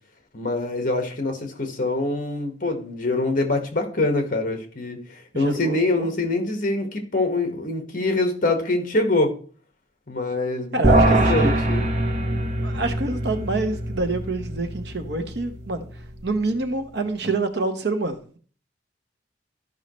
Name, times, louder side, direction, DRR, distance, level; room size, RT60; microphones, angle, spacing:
voice 1, 0.3-9.3 10.1-11.8, left 2 dB, 50° left, 1.6 m, -24 dB
voice 2, 5.3-6.1 10.7-11.5 12.6-18.4, right 3 dB, 70° right, 1.1 m, -27 dB
sound 1, 10.8-16.3, right 1 dB, 40° right, 1.5 m, -23 dB
13.0 x 5.6 x 3.2 m
head